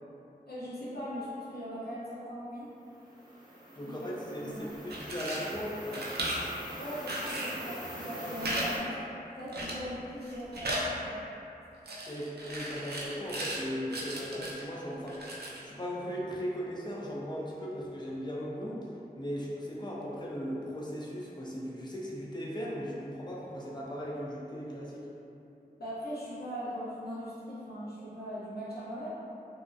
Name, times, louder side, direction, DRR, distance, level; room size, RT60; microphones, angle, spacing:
voice 1, 0.5-2.7 3.8-4.7 6.7-9.0 9.4-11.2 25.8-29.1, equal, 80° left, -9 dB, 0.7 m, -40 dB
hemglass horn, 2.9-8.8, equal, 25° right, 0.6 m, -44 dB
voice 2, 3.8-6.0 12.1-18.8 19.2-25.1, equal, 25° left, -5 dB, 0.4 m, -38 dB
sound 1, 4.7-5.5 5.9-6.5 7.1-7.6 8.4-8.7 8.9-9.0 9.5-9.9 10.2-10.9 11.9-13.6 13.9-14.6 15.1-15.7, right 1 dB, 85° right, 0.4 m, -36 dB
2.4 x 2.0 x 2.5 m, 2.8 s
wide cardioid pair, 60°, 16 cm